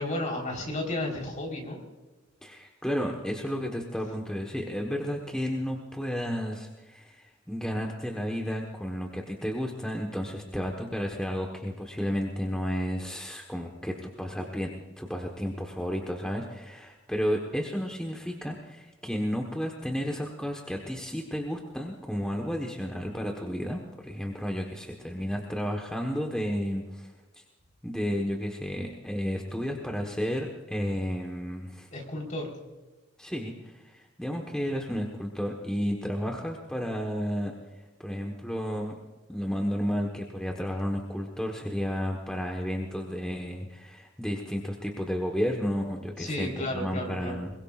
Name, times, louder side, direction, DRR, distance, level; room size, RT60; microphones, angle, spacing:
voice 1, 0.0-1.8 31.9-32.5 46.2-47.4, left 1 dB, 40° left, 0 dB, 4.2 m, -33 dB
voice 2, 2.4-14.7 15.0-27.1 27.8-31.9 33.2-37.5 38.0-39.0 39.3-47.5, equal, 5° left, 1 dB, 1.3 m, -32 dB
22.0 x 21.5 x 2.5 m, 1.2 s
head